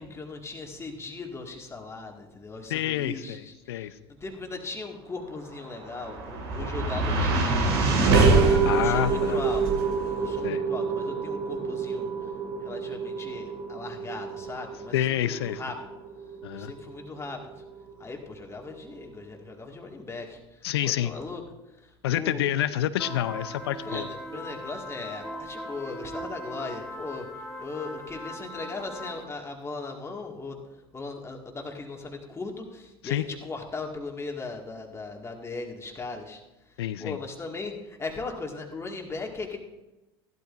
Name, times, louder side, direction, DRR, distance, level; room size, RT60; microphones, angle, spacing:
voice 1, 0.0-12.3 12.6-15.7 16.5-17.6 18.0-21.4 21.7-22.7 23.9-30.6 30.9-39.6, left 3 dB, 20° left, 2 dB, 2.0 m, -38 dB
voice 2, 2.7-4.0 6.6-6.7 8.6-9.4 10.4-10.7 14.9-15.6 16.4-16.7 20.6-21.1 22.0-24.1 33.0-33.2 36.8-37.2, left 12 dB, 80° left, 14 dB, 0.6 m, -28 dB
sound 1, 5.5-17.9, right 3 dB, 75° right, 2.3 m, -26 dB
sound 2, 23.0-29.2, equal, ahead, 2.4 m, -39 dB
15.0 x 12.0 x 2.6 m, 1.0 s
hypercardioid pair, 75°, 13 cm